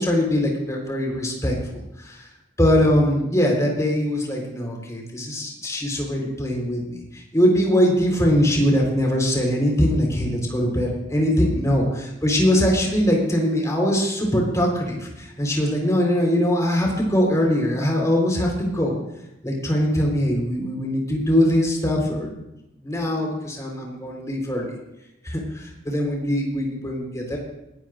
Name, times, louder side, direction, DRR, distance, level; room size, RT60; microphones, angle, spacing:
voice 1, 0.0-2.2 2.6-19.0 19.4-22.3 22.8-24.7 25.2-27.4, equal, 20° left, -1 dB, 4.1 m, -22 dB
20.0 x 15.5 x 2.6 m, 0.92 s
head